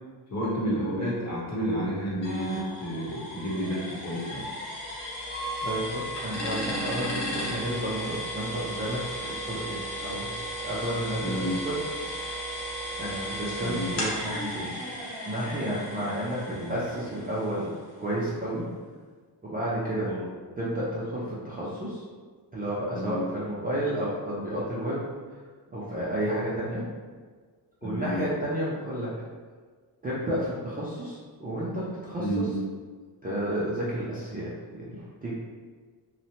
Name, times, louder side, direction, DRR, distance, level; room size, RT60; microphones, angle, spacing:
voice 1, 0.3-4.5 11.2-11.6 13.6-14.0 16.5-16.7 20.0-20.2 22.9-23.2 27.8-28.2 32.2-32.5, equal, 40° left, -5 dB, 0.9 m, -30 dB
sound 1, 2.2-17.9, equal, 85° left, 0.9 m, -35 dB
voice 2, 5.6-10.3 10.6-11.8 12.1-12.5 13.0-14.7 15.2-17.7 18.0-18.7 19.4-20.1 20.6-22.0 22.5-25.0 25.3-25.4 25.7-26.8 27.8-29.1 30.0-32.5 33.2-35.3, right 1 dB, 20° right, -8 dB, 0.4 m, -31 dB
2.8 x 2.1 x 2.7 m, 1.5 s
cardioid pair, 130°, 42 cm